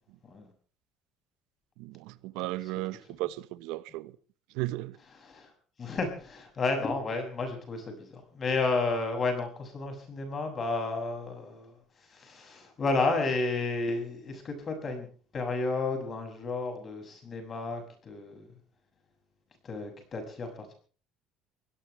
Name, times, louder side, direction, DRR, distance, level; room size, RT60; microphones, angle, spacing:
voice 1, 1.8-4.1 4.5-5.0, right 18 dB, 85° right, 1.0 m, -35 dB
voice 2, 5.2-5.5 5.8-11.8 12.1-15.1 15.3-18.5 19.6-20.7, left 3 dB, 30° left, 6.5 m, -32 dB
23.5 x 18.0 x 3.3 m
cardioid pair, 150°, 0 cm